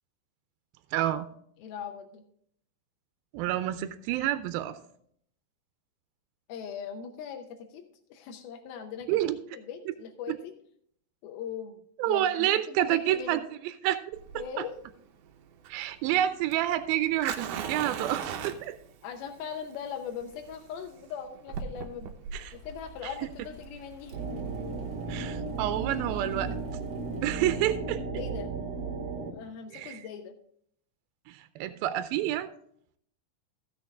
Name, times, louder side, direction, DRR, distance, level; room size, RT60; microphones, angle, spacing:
voice 1, 0.9-1.3 3.3-4.8 9.1-9.4 10.3-10.4 12.0-13.4 13.8-14.0 14.4-14.7 15.7-18.8 22.3-22.5 25.1-26.6 27.2-28.0 29.7-30.0 31.3-32.5, right 13 dB, 90° right, 11 dB, 2.4 m, -28 dB
voice 2, 1.6-2.2 6.5-7.8 8.1-9.1 9.5-10.5 11.2-13.4 14.3-14.7 19.0-22.1 22.5-24.1 28.2-28.5 29.3-30.3, left 7 dB, 85° left, 4 dB, 2.7 m, -40 dB
Fire, 14.1-25.2, right 7 dB, 75° right, 2.2 m, -40 dB
sound 1, 22.3-27.8, left 1 dB, 55° left, 2.7 m, -49 dB
sound 2, 24.1-29.3, right 4 dB, 55° right, 2.3 m, -35 dB
15.0 x 6.6 x 3.6 m, 0.65 s
omnidirectional pair, 4.2 m